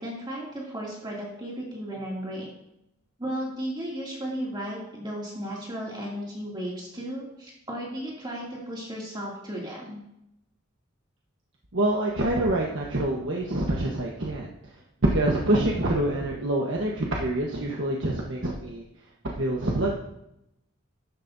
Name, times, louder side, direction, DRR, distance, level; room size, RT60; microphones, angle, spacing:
voice 1, 0.0-2.5 3.2-10.0, equal, 20° right, -5 dB, 2.7 m, -35 dB
voice 2, 11.7-14.5 15.1-18.8 19.2-19.9, right 1 dB, 65° right, -2 dB, 1.3 m, -26 dB
13.0 x 11.0 x 2.8 m, 0.83 s
head